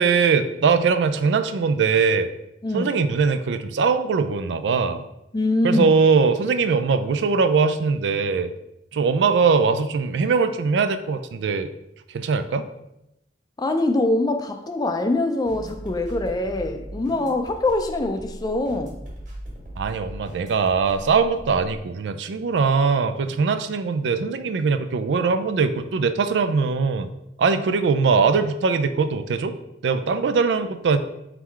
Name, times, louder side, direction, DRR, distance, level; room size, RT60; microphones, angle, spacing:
voice 1, 0.0-2.3 2.7-5.0 5.6-8.5 8.9-11.7 12.1-12.7 19.8-27.1 27.4-29.5 29.8-31.0, right 5 dB, 85° right, 10 dB, 0.4 m, -21 dB
voice 2, 2.6-2.9 5.3-5.9 13.6-19.0, left 2 dB, 20° left, 6 dB, 0.4 m, -23 dB
sound 1, 15.5-21.8, equal, 45° right, 1.6 m, -39 dB
3.8 x 3.1 x 4.5 m, 0.88 s
head